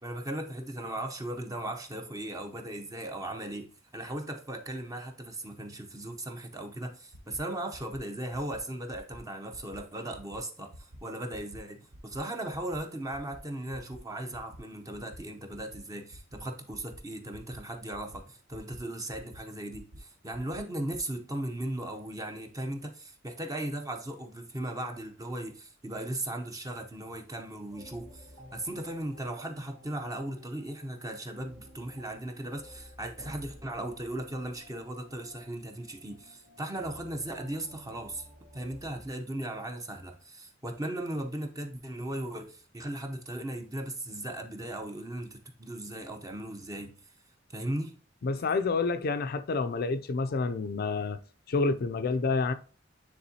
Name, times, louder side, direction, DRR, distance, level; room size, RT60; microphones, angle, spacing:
voice 1, 0.0-3.7 3.9-38.3 38.5-46.9 47.5-47.9, right 1 dB, 20° right, 0.7 m, -37 dB
sound 1, 7.1-7.4 7.7-8.0 8.3-8.6 8.9-9.2 9.5-9.8 10.1-10.4 10.7-11.0 11.3-11.6 11.9-12.2 12.5-12.8 13.1-13.4 13.7-14.0 14.3-14.6 14.9-15.2 15.5-15.8 16.1-16.4 16.7-17.0 17.3-17.6 17.9-18.2 18.5-18.8 19.1-19.4 19.7-20.0 20.3-20.6 20.9-21.0, equal, 85° right, 0.9 m, -50 dB
sound 2, 27.7-39.1, left 1 dB, 60° right, 2.2 m, -53 dB
voice 2, 48.2-51.2 51.5-52.5, left 4 dB, 50° left, 0.4 m, -28 dB
9.5 x 3.6 x 2.8 m
head